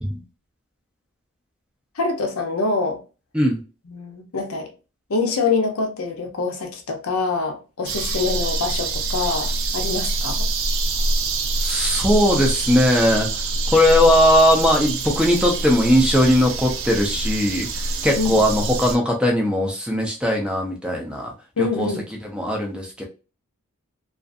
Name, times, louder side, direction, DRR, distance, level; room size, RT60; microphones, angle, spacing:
voice 1, 2.0-3.0 3.9-4.7 5.1-10.5 18.2-18.4 21.6-22.0, left 4 dB, 75° left, 0.7 m, -25 dB
sound 1, 7.9-19.0, right 3 dB, 60° right, 0.4 m, -25 dB
voice 2, 11.6-21.3 21.6-21.9 22.2-23.0, equal, 5° right, 0.5 m, -19 dB
2.5 x 2.4 x 2.5 m
head